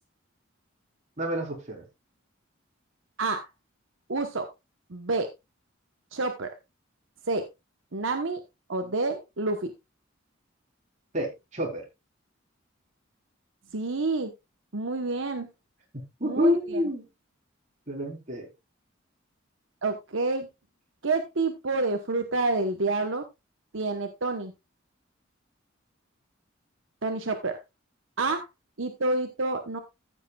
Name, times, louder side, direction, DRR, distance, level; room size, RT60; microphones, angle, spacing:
voice 1, 1.2-1.8 11.1-11.8 16.2-17.1 17.9-18.5, left 1 dB, 40° right, 0 dB, 3.9 m, -28 dB
voice 2, 4.1-4.5 4.9-5.3 6.1-6.5 7.3-7.4 7.9-8.4 8.7-9.7 13.7-14.3 14.7-15.5 16.2-16.8 19.8-20.5 21.0-23.2 23.7-24.5 27.0-27.6 28.2-28.4 28.8-29.8, right 3 dB, 75° right, 6 dB, 1.1 m, -28 dB
14.5 x 8.4 x 2.3 m, 0.22 s
head